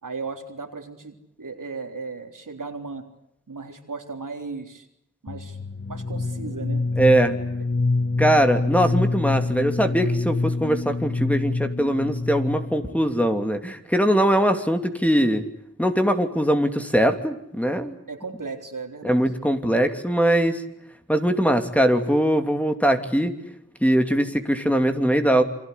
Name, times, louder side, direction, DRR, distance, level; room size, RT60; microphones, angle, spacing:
voice 1, 0.0-3.1 3.5-4.9 5.2-5.6 5.9-6.8 18.1-19.3, right 4 dB, 85° right, 4 dB, 3.9 m, -36 dB
sound 1, 5.3-12.9, left 3 dB, 40° left, 1.2 m, -26 dB
voice 2, 7.0-7.4 8.2-15.4 15.8-18.0 19.0-20.6 21.1-23.3 23.8-25.4, right 1 dB, 5° left, 6 dB, 2.9 m, -21 dB
28.0 x 24.5 x 8.3 m, 0.79 s
wide cardioid pair, 50°, 31 cm